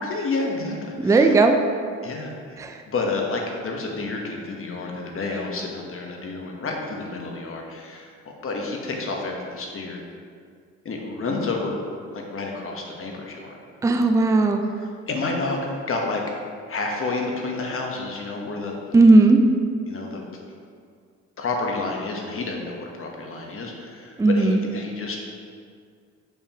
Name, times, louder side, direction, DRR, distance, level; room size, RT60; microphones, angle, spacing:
voice 1, 0.0-1.4 2.0-2.6 2.9-10.0 10.8-11.8 12.1-13.6 14.6-15.6 15.9-16.2 16.7-18.8 19.9-20.2 21.4-25.2, left 3 dB, 45° left, 0 dB, 1.1 m, -30 dB
voice 2, 1.0-1.5 2.6-2.8 13.8-14.6 18.9-19.4 24.2-24.6, right 3 dB, 10° right, 5 dB, 0.4 m, -16 dB
6.7 x 5.6 x 2.9 m, 2.1 s
cardioid pair, 90°, 30 cm